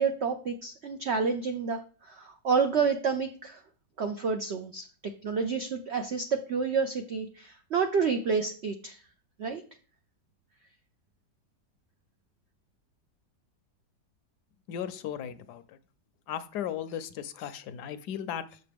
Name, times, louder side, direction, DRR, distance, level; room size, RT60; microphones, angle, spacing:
voice 1, 0.0-3.6 4.0-4.9 5.2-9.0 9.4-9.6, right 5 dB, 85° right, 6 dB, 0.5 m, -29 dB
voice 2, 14.7-15.8 16.3-18.6, left 9 dB, 75° left, 12 dB, 1.1 m, -36 dB
6.7 x 6.6 x 3.4 m, 0.40 s
omnidirectional pair, 1.9 m